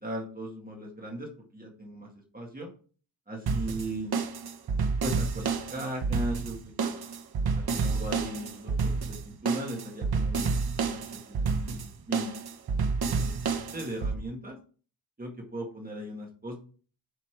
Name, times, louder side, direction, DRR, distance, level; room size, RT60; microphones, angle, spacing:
voice 1, 0.0-2.7 3.3-4.2 5.0-7.0 7.5-11.0 11.3-12.3 13.1-14.6 15.2-16.6, right 1 dB, 20° right, 0 dB, 1.8 m, -38 dB
sound 1, 3.5-14.1, right 4 dB, 50° right, 1.1 m, -29 dB
8.3 x 5.8 x 4.6 m, 0.41 s
wide cardioid pair, 165°, 46 cm